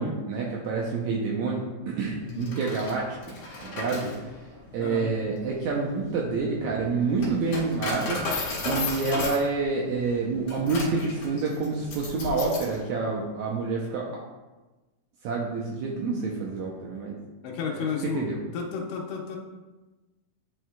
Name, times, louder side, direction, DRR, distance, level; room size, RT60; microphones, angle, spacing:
voice 1, 0.0-3.2 3.7-4.1 4.7-8.3 8.6-14.2 15.2-17.2 17.7-18.4, right 4 dB, 85° right, -3 dB, 1.6 m, -28 dB
voice 2, 2.2-2.5 3.9-4.2 4.7-5.1 17.4-19.4, left 6 dB, 75° left, 1 dB, 2.4 m, -33 dB
Coin (dropping), 2.3-12.8, left 2 dB, 55° left, 2.1 m, -35 dB
9.9 x 4.7 x 2.3 m, 1.1 s
omnidirectional pair, 4.1 m